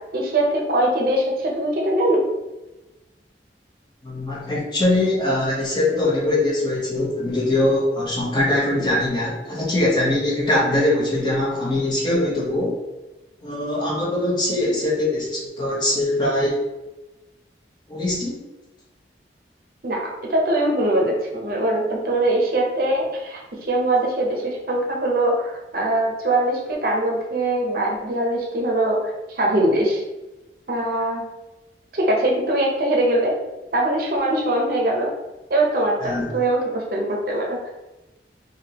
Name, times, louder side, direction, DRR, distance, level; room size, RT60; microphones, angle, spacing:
voice 1, 0.1-2.2 19.8-30.0 30.7-31.2 31.9-33.4 33.7-35.1 35.5-37.6, right 1 dB, 55° right, -1 dB, 0.6 m, -22 dB
voice 2, 4.0-12.8 13.4-16.6 17.9-18.4 36.0-36.3, left 1 dB, 25° left, -5 dB, 0.9 m, -22 dB
3.4 x 2.6 x 2.8 m, 1.1 s
head